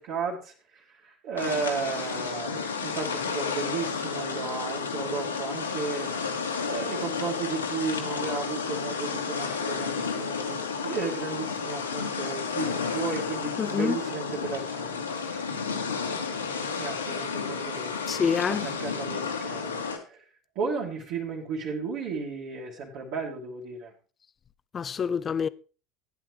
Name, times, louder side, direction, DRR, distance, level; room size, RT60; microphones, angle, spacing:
voice 1, 0.0-6.1 6.6-15.3 16.8-17.9 18.5-20.2 20.5-23.9, right 4 dB, 55° right, 3.0 m, -34 dB
sound 1, 1.4-20.0, left 5 dB, 90° left, 2.2 m, -32 dB
voice 2, 13.6-14.0 18.1-18.6 24.7-25.5, left 7 dB, 30° left, 0.7 m, -26 dB
15.5 x 10.0 x 3.2 m
figure-of-eight pair, 70°, 0 cm